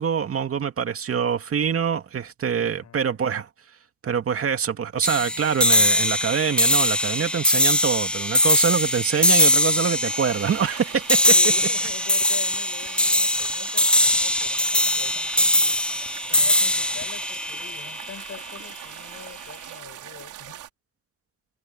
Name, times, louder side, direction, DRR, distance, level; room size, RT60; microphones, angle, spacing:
voice 1, 0.0-3.5 4.0-11.2, right 7 dB, 50° right, 2.4 m, -25 dB
voice 2, 2.6-3.2 11.3-20.6, left 9 dB, 60° left, 5.5 m, -44 dB
sound 1, 5.0-18.5, left 1 dB, 5° left, 0.4 m, -21 dB
sound 2, 10.0-20.7, right 12 dB, 80° right, 4.5 m, -41 dB
cardioid pair, 90°, 30 cm